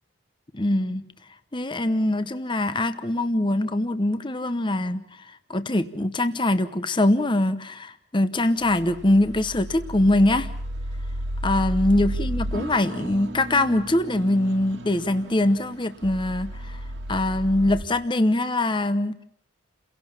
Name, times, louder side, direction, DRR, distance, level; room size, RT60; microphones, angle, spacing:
voice 1, 0.5-1.1 1.5-10.5 11.4-16.8 17.1-19.2, left 1 dB, 25° left, 11 dB, 0.9 m, -23 dB
sound 1, 8.4-17.8, equal, 65° right, 2.1 m, -33 dB
30.0 x 17.0 x 7.2 m, 0.71 s
head